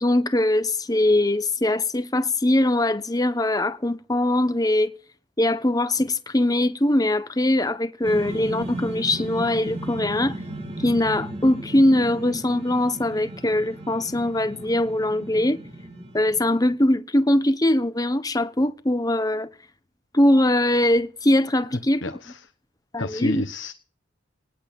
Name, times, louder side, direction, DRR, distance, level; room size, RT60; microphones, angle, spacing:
voice 1, 0.0-4.9 5.4-10.4 10.8-15.6 16.1-19.5 20.1-22.0 22.9-23.4, left 1 dB, 20° left, 1.1 m, -21 dB
sound 1, 8.0-16.7, right 1 dB, 30° right, 3.2 m, -35 dB
voice 2, 22.0-22.4 23.0-23.7, left 2 dB, 65° left, 1.2 m, -30 dB
19.0 x 8.3 x 7.1 m
head